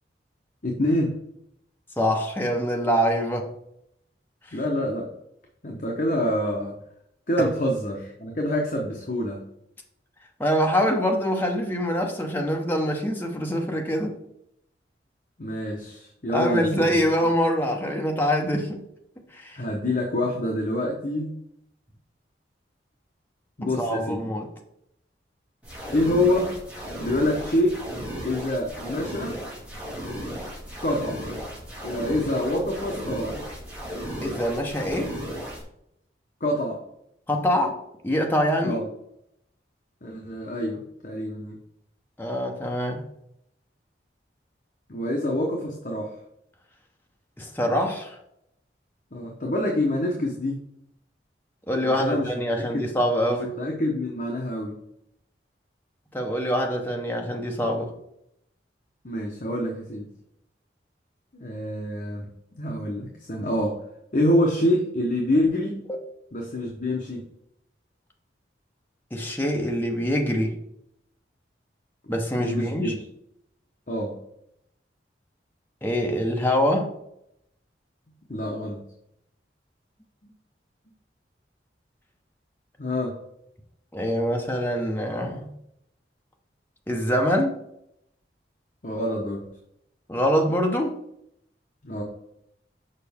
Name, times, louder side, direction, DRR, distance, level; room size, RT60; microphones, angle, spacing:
voice 1, 0.6-1.1 4.5-5.1 5.6-6.8 7.3-9.4 15.4-17.0 19.6-21.3 23.6-24.3 25.9-26.5 27.0-27.8 28.2-29.4 30.8-31.2 31.8-33.3 36.4-36.8 38.6-38.8 40.0-41.6 44.9-46.1 49.1-50.6 51.8-52.9 53.4-54.7 59.0-60.1 61.3-62.3 62.6-63.8 64.1-65.8 66.3-67.2 72.3-72.9 73.9-74.1 78.3-78.8 82.8-83.1 88.8-89.4 91.8-92.0, left 1 dB, 45° left, 0 dB, 1.0 m, -26 dB
voice 2, 2.0-3.5 4.5-4.6 10.4-14.1 16.3-18.8 19.3-19.6 23.6-24.5 34.2-35.1 37.3-37.8 38.0-38.8 42.2-43.0 47.4-48.1 51.7-53.5 56.1-57.9 65.9-66.0 69.1-70.5 72.1-72.9 75.8-76.9 83.9-85.5 86.9-87.5 90.1-90.9, equal, 10° left, 1 dB, 0.9 m, -24 dB
sound 1, 25.6-35.6, equal, 10° right, 2.2 m, -35 dB
6.7 x 5.3 x 3.6 m, 0.77 s
head